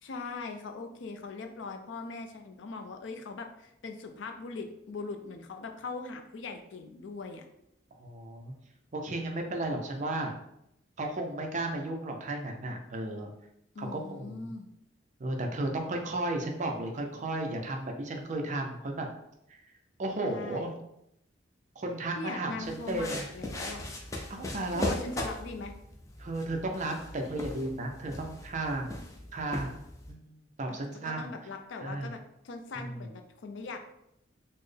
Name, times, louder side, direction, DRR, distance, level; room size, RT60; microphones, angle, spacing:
voice 1, 0.0-7.4 13.7-14.7 20.3-20.7 22.2-23.9 24.7-25.7 30.7-30.8 31.0-33.9, left 3 dB, 70° left, 5 dB, 0.4 m, -40 dB
voice 2, 8.0-8.5 8.9-10.4 11.0-13.3 13.8-14.5 15.2-19.1 19.5-19.6 20.0-20.7 21.8-23.3 24.3-24.9 26.2-28.9 29.3-29.7 30.1-31.3 31.8-32.1 32.8-33.0, right 2 dB, 40° right, 3 dB, 0.5 m, -34 dB
sound 1, 22.6-30.1, left 1 dB, 15° left, 0.4 m, -39 dB
4.2 x 2.0 x 3.2 m, 0.80 s
head